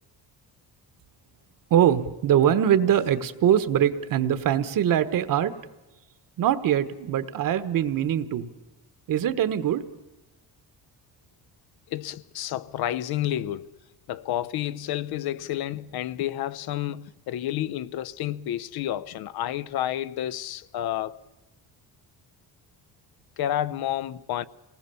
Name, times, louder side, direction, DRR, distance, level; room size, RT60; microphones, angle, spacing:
voice 1, 1.7-5.5 6.4-8.5 9.1-9.8, right 10 dB, 55° right, 1.3 m, -22 dB
voice 2, 11.9-13.8 14.1-21.2 23.4-24.4, left 12 dB, 75° left, 0.8 m, -30 dB
28.0 x 19.0 x 7.0 m
cardioid pair, 165°, 38 cm